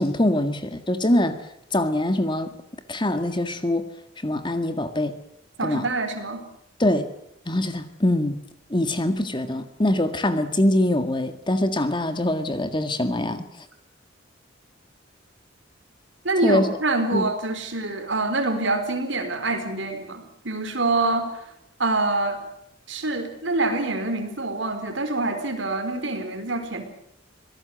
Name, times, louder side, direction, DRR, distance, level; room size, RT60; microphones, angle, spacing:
voice 1, 0.0-1.4 1.7-2.5 2.9-3.9 4.2-5.1 5.6-5.8 6.8-7.1 7.5-8.4 8.7-13.5 16.4-16.6 17.1-17.3, left 1 dB, 25° left, 9 dB, 1.8 m, -23 dB
voice 2, 5.6-6.4 16.2-21.4 21.8-22.4 22.9-26.8, right 2 dB, 65° right, 6 dB, 4.4 m, -25 dB
26.0 x 18.0 x 7.8 m, 0.75 s
head